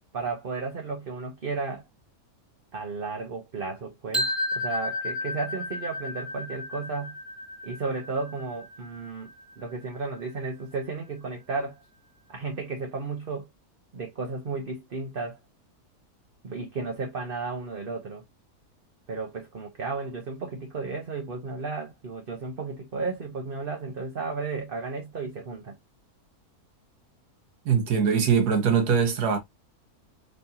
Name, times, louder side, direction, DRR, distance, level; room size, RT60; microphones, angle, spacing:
voice 1, 0.1-1.8 2.7-7.2 7.6-9.3 9.6-11.8 12.3-13.5 13.9-15.4 16.4-18.2 19.1-25.8, right 4 dB, 40° right, 1.0 m, -33 dB
sound 1, 4.1-10.1, left 2 dB, ahead, 1.6 m, -33 dB
voice 2, 27.6-29.4, right 6 dB, 80° right, 1.7 m, -22 dB
4.2 x 3.3 x 2.7 m
omnidirectional pair, 1.7 m